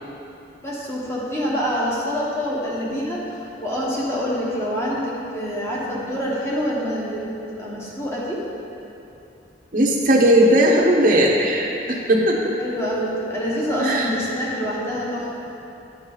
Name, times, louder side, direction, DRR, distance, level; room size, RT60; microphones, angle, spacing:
voice 1, 0.6-7.2 7.5-8.4 12.6-15.3, equal, 15° left, -6 dB, 1.2 m, -26 dB
voice 2, 9.7-12.4 13.8-14.1, equal, 45° right, -3 dB, 0.8 m, -17 dB
10.5 x 5.6 x 3.9 m, 2.8 s
head